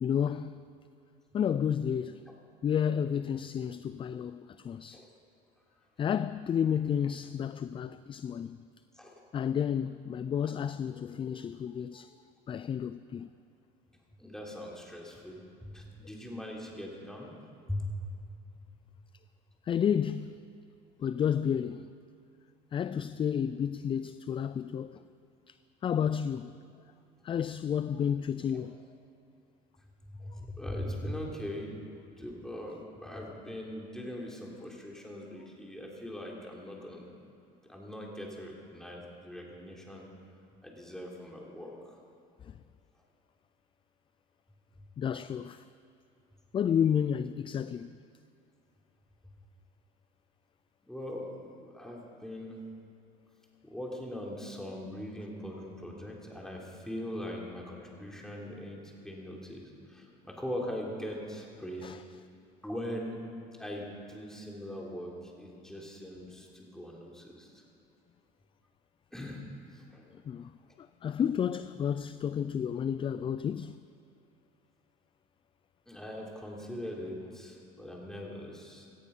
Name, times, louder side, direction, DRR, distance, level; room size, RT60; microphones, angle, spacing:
voice 1, 0.0-0.5 1.3-2.2 2.6-5.0 6.0-8.6 9.3-12.1 12.5-13.3 19.7-20.4 21.0-21.9 22.7-25.0 25.5-25.6 25.8-26.5 27.2-28.7 45.0-45.6 46.5-47.9 61.8-62.0 70.3-70.5 71.0-73.8, left 8 dB, 30° left, 0.4 m, -31 dB
voice 2, 14.2-17.3 17.7-17.8 28.5-28.7 30.1-31.7 32.2-37.1 37.7-40.1 40.6-42.0 50.8-52.6 53.6-61.9 62.6-67.6 69.1-69.4 69.7-70.1 75.9-78.9, left 1 dB, 5° left, 3.5 m, -41 dB
17.5 x 13.5 x 5.5 m
supercardioid pair, 100°, 17 cm